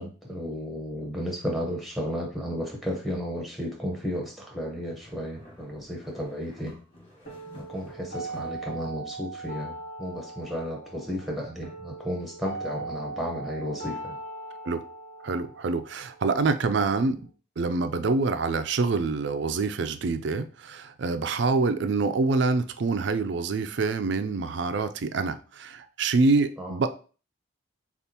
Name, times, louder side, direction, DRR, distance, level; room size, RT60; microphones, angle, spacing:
voice 1, 0.0-6.8 7.7-14.2 26.6-26.8, equal, ahead, 1.0 m, -33 dB
sound 1, 4.7-8.8, left 1 dB, 30° left, 1.6 m, -49 dB
sound 2, 7.3-17.3, right 3 dB, 50° left, 2.0 m, -40 dB
voice 2, 15.2-17.2 17.6-26.9, right 3 dB, 60° right, 0.4 m, -26 dB
6.8 x 2.4 x 2.9 m
head